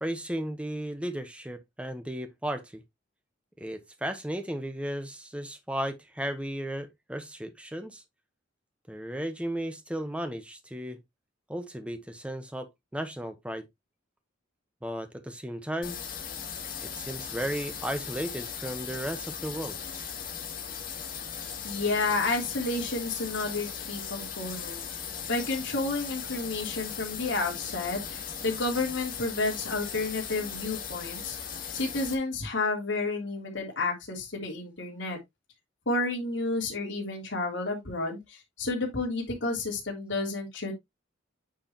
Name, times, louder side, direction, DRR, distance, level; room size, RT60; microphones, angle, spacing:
voice 1, 0.0-2.8 3.6-8.0 8.9-11.0 11.5-13.7 14.8-16.0 16.8-19.8, right 1 dB, 5° right, 1.0 m, -35 dB
sound 1, 15.8-32.1, left 7 dB, 45° left, 2.3 m, -38 dB
voice 2, 21.6-31.4 31.7-35.2 35.8-40.7, left 3 dB, 70° left, 3.2 m, -31 dB
9.0 x 4.8 x 2.9 m
head